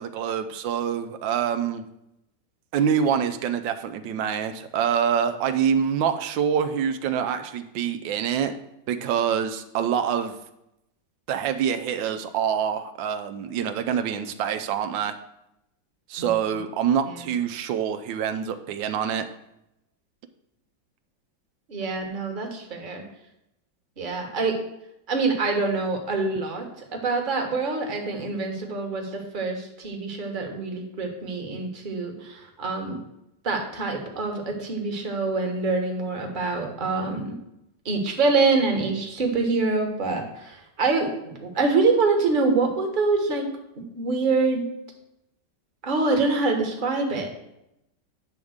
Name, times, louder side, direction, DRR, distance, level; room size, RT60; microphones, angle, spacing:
voice 1, 0.0-1.8 2.7-8.6 8.9-10.4 11.3-15.1 16.1-19.3, right 8 dB, 85° right, 8 dB, 1.3 m, -25 dB
voice 2, 21.7-23.0 24.0-24.6 25.1-33.0 33.4-37.3 37.8-43.4 43.9-44.6 45.8-47.3, right 3 dB, 30° right, 2 dB, 1.2 m, -25 dB
9.0 x 3.6 x 6.3 m, 0.84 s
omnidirectional pair, 2.0 m